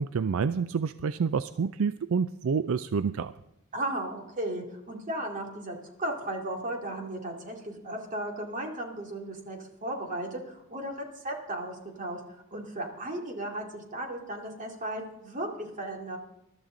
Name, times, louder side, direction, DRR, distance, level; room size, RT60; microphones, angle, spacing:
voice 1, 0.0-3.3, right 5 dB, 65° right, 13 dB, 0.4 m, -28 dB
voice 2, 3.7-12.2 12.5-16.2, right 1 dB, 35° right, 2 dB, 2.5 m, -35 dB
21.0 x 12.5 x 3.8 m, 0.84 s
head